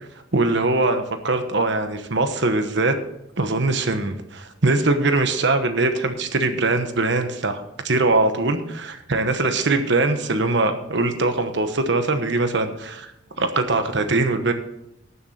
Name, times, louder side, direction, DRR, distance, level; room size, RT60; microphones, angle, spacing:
voice 1, 0.3-2.9 3.4-13.1 13.4-14.5, right 2 dB, 65° right, 7 dB, 1.2 m, -22 dB
19.0 x 7.0 x 4.3 m, 0.83 s
head